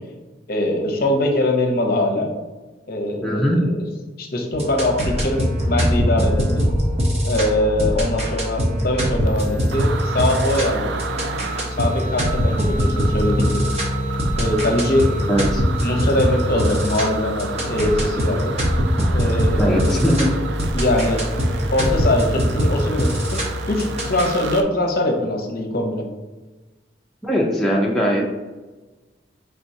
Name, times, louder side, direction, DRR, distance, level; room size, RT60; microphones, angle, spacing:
voice 1, 0.5-2.3 2.9-3.9 4.2-6.6 7.2-10.9 11.6-13.7 14.4-15.1 15.8-18.6 19.1-20.0 20.7-21.2 21.7-26.0, left 1 dB, 50° left, 2 dB, 0.6 m, -22 dB
voice 2, 3.2-3.6 15.3-15.6 19.6-20.3 27.2-28.2, equal, ahead, -3 dB, 0.4 m, -19 dB
sound 1, 4.5-24.3, equal, 35° right, 0.8 m, -22 dB
sound 2, 8.9-9.0 9.2-24.6, right 5 dB, 70° right, 0.3 m, -33 dB
4.3 x 3.4 x 2.7 m, 1.2 s
head